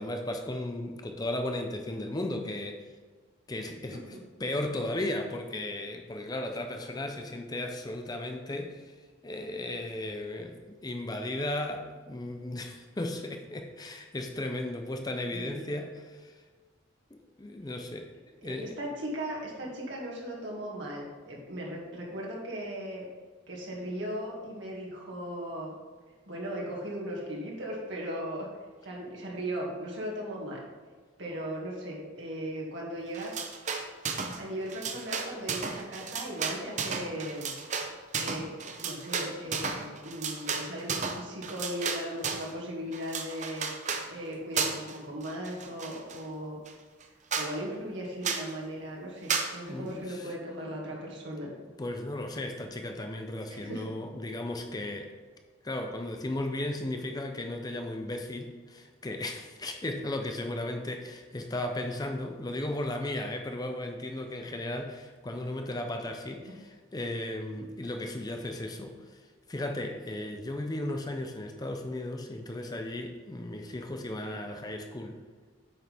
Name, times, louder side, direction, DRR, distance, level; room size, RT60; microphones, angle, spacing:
voice 1, 0.0-2.8 3.5-9.0 9.2-16.4 17.1-18.1 18.4-18.7 49.6-50.3 51.4-55.1 55.6-69.2 69.5-75.2, left 1 dB, 20° left, 5 dB, 0.5 m, -35 dB
voice 2, 3.9-4.2 15.3-15.7 18.4-23.1 23.5-25.7 26.3-28.5 28.8-30.6 31.2-33.5 34.4-37.5 38.2-38.5 38.8-43.7 44.1-46.6 47.4-51.5 53.5-53.9 66.5-66.6, equal, 65° right, -3 dB, 2.1 m, -37 dB
sound 1, 33.1-34.4 34.7-42.5 42.9-44.1 44.6-45.0 45.2-46.2 46.7-46.8 47.0-47.1 47.3-47.5 48.2-48.5 49.3-49.5, right 5 dB, 35° right, 0.6 m, -33 dB
8.7 x 6.2 x 3.4 m, 1.5 s
head